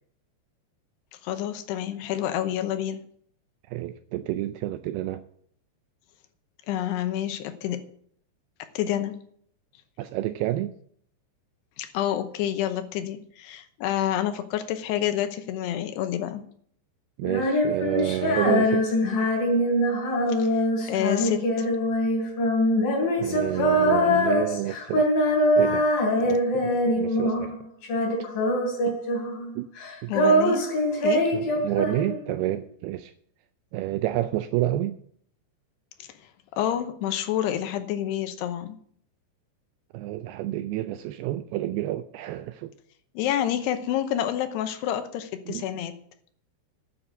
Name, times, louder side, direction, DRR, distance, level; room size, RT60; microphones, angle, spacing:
voice 1, 1.2-3.0 6.7-7.9 8.7-9.2 11.8-16.5 20.4-21.7 28.9-29.0 30.1-30.8 31.0-31.3 36.0-36.1 36.5-38.8 43.2-46.0, left 11 dB, 75° left, 2.9 m, -28 dB
voice 2, 3.7-5.2 10.0-10.7 17.2-18.9 23.2-25.1 25.6-25.8 26.2-27.6 29.6-29.7 30.0-30.1 31.3-33.1 33.7-35.0 39.9-42.7 45.5-45.7, right 14 dB, 85° right, 2.3 m, -29 dB
Female singing, 17.2-27.6 27.8-29.5 29.8-32.4, equal, 55° left, 4.7 m, -23 dB
10.5 x 6.8 x 8.2 m
omnidirectional pair, 5.0 m